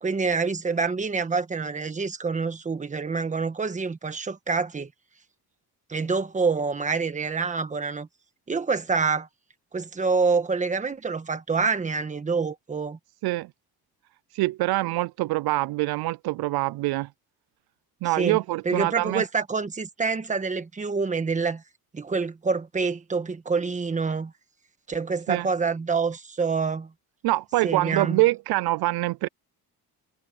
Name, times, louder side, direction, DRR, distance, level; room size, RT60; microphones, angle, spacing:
voice 1, 0.0-4.9 5.9-8.1 8.5-9.3 9.7-13.0 18.2-18.4 18.6-21.6 21.9-24.3 24.9-26.9 27.6-28.2, right 4 dB, 20° right, 1.4 m, -26 dB
voice 2, 14.3-17.1 18.0-19.2 25.3-25.5 27.2-29.3, right 19 dB, 75° right, 0.5 m, -25 dB
cardioid pair, 165°, 38 cm